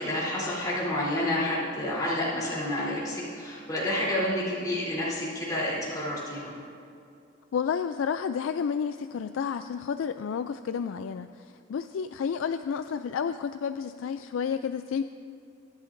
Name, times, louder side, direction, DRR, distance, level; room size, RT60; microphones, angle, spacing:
voice 1, 0.0-6.5, left 1 dB, 20° left, -8 dB, 3.3 m, -29 dB
voice 2, 7.5-15.0, left 6 dB, 70° left, 10 dB, 0.3 m, -31 dB
23.0 x 11.0 x 2.6 m, 2.5 s
head